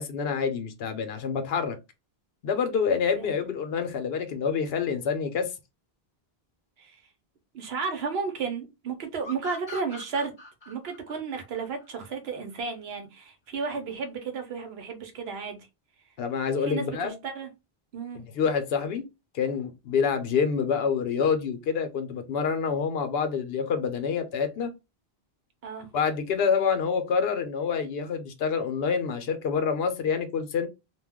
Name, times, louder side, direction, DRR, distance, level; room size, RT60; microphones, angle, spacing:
voice 1, 0.0-1.8 2.4-5.5 16.2-17.2 18.1-19.0 19.3-24.7 25.9-30.7, left 6 dB, 75° left, 0.8 m, -27 dB
voice 2, 7.5-10.3 10.7-15.6 16.6-17.5 17.9-18.2 25.6-25.9, right 5 dB, 80° right, 0.9 m, -33 dB
sound 1, 9.2-12.6, left 2 dB, 30° left, 0.7 m, -44 dB
2.3 x 2.1 x 3.4 m
omnidirectional pair, 1.0 m